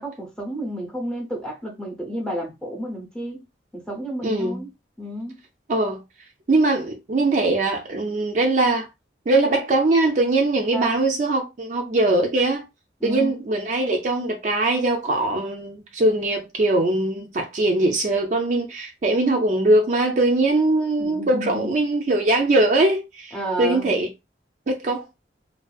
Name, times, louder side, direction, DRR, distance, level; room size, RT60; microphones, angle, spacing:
voice 1, 0.0-3.4 3.7-4.7 5.0-5.4 10.7-11.0 13.0-13.3 21.0-21.7 23.3-23.9, equal, 5° left, 0.6 m, -31 dB
voice 2, 4.2-4.6 5.7-6.0 6.5-8.9 9.3-12.6 13.0-24.1 24.7-25.1, right 2 dB, 40° right, 0.3 m, -21 dB
2.5 x 2.2 x 2.3 m
head